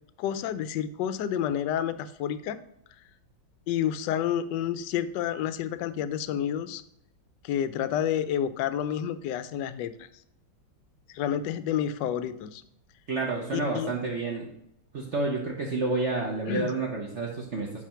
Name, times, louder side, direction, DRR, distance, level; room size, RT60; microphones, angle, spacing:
voice 1, 0.2-2.6 3.7-6.8 7.4-10.1 11.1-12.6 13.5-13.9 16.5-16.7, left 9 dB, 75° left, 13 dB, 1.1 m, -29 dB
voice 2, 13.1-14.5 14.9-17.8, right 3 dB, 50° right, -1 dB, 0.9 m, -29 dB
8.5 x 3.3 x 5.6 m, 0.76 s
omnidirectional pair, 2.2 m